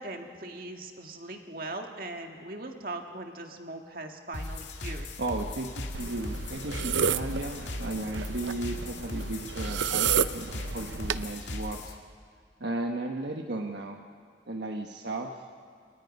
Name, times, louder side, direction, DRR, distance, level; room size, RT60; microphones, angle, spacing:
voice 1, 0.0-5.1, right 2 dB, 50° right, 3 dB, 1.9 m, -40 dB
sound 1, 4.3-11.9, left 1 dB, 80° left, 2.2 m, -38 dB
voice 2, 5.2-11.9 12.6-14.0 14.5-15.3, right 2 dB, 75° right, 3 dB, 1.2 m, -35 dB
sound 2, 5.9-11.2, right 7 dB, 90° right, 0.7 m, -31 dB
29.5 x 29.0 x 5.4 m, 2.2 s
head